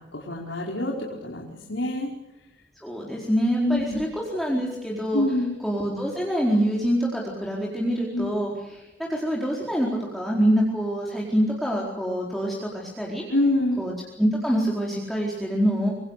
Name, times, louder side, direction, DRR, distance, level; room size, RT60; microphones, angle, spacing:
voice 1, 0.1-0.9 1.2-2.1 3.5-4.0 5.1-5.6 8.1-8.3 13.3-13.8, left 1 dB, 85° left, -3 dB, 4.7 m, -25 dB
voice 2, 2.8-5.2 5.6-13.2 13.8-15.9, equal, ahead, -4 dB, 4.5 m, -25 dB
27.0 x 25.0 x 6.7 m, 1.0 s
head